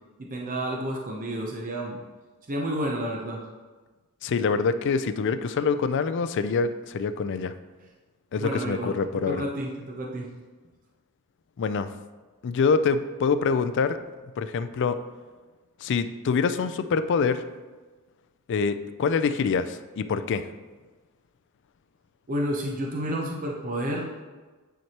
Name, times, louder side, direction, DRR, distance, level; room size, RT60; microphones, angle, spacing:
voice 1, 0.2-2.0 2.5-3.4 8.4-8.9 9.3-10.3 22.3-24.2, right 1 dB, 35° right, -1 dB, 0.7 m, -30 dB
voice 2, 4.2-7.5 8.3-9.4 11.6-11.9 12.4-14.0 14.4-15.0 15.8-17.4 18.5-20.5, left 5 dB, 55° left, 12 dB, 0.3 m, -25 dB
9.1 x 4.6 x 2.9 m, 1.3 s
head